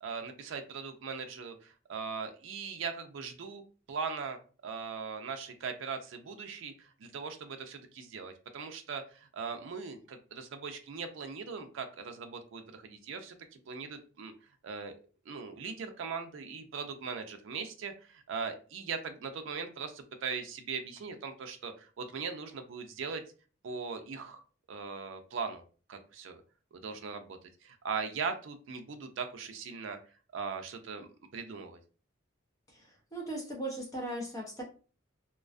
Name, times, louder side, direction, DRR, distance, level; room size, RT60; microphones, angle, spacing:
voice 1, 0.0-3.6 3.9-14.3 14.6-15.0 15.3-23.2 23.6-24.4 24.7-25.6 25.9-26.4 26.7-30.0 30.3-31.8, right 5 dB, 70° right, 6 dB, 0.4 m, -40 dB
voice 2, 32.7-34.6, right 1 dB, 15° left, -1 dB, 0.5 m, -38 dB
2.4 x 2.2 x 2.3 m, 0.38 s
head